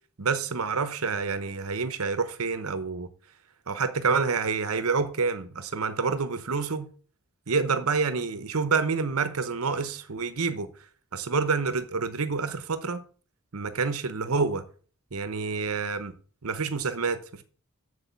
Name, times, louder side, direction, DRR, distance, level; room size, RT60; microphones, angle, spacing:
voice 1, 0.2-3.1 3.7-6.9 7.5-10.7 11.1-13.0 13.5-14.6 15.1-16.1 16.4-17.4, right 4 dB, 75° right, 0.9 m, -28 dB
8.3 x 6.9 x 6.9 m
head